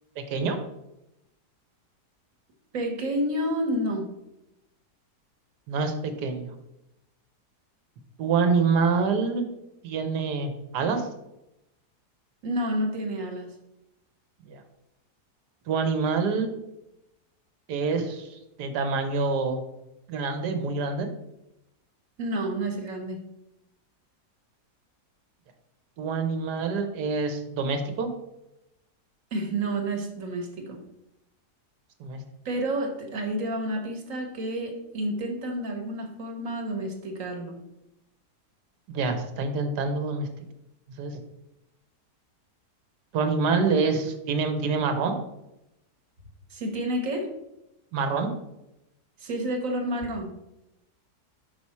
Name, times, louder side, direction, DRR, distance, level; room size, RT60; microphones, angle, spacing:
voice 1, 0.2-0.6 5.7-6.5 8.2-9.5 9.8-11.1 14.4-14.6 15.7-16.6 17.7-19.6 20.1-21.1 26.0-28.1 32.0-32.2 38.9-40.3 41.0-41.1 43.1-45.2 47.9-48.3, right 4 dB, 85° right, 6 dB, 1.4 m, -26 dB
voice 2, 2.7-4.1 12.4-13.5 22.2-23.2 29.3-30.8 32.4-37.6 46.5-47.3 49.2-50.3, right 1 dB, 55° right, 2 dB, 1.4 m, -30 dB
5.9 x 4.8 x 4.2 m, 0.89 s
omnidirectional pair, 1.7 m